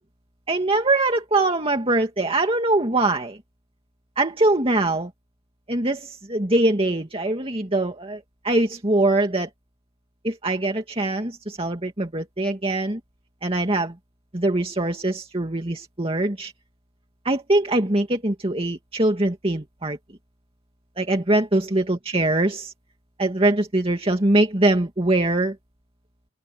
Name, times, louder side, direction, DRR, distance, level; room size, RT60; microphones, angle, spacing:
voice 1, 0.5-3.4 4.2-5.1 5.7-9.5 10.2-13.0 13.4-14.0 14.3-16.5 17.2-20.0 21.0-22.7 23.2-25.6, right 2 dB, 30° right, 2.3 m, -22 dB
open air
head